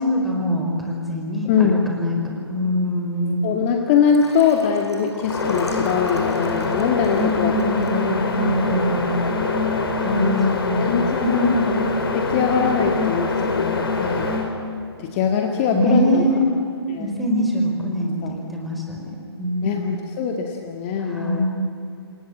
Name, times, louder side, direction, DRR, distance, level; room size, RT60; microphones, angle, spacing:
voice 1, 0.0-3.5 7.1-9.2 10.0-10.3 10.6-10.9 11.2-11.8 15.7-16.6 17.0-19.9 21.1-21.5, equal, ahead, -2 dB, 4.8 m, -23 dB
voice 2, 1.5-1.8 3.4-7.6 10.2-11.6 12.1-14.3 15.0-16.2 16.9-17.1 18.2-18.4 19.6-21.5, left 7 dB, 25° left, 3 dB, 1.9 m, -22 dB
Liquid, 4.0-8.6 9.1-9.4 9.6-9.7, left 1 dB, 85° left, 6.4 m, -37 dB
sound 1, 5.2-14.5, left 3 dB, 60° left, 4.9 m, -24 dB
28.0 x 23.5 x 8.8 m, 2.6 s
figure-of-eight pair, 140°, 14 cm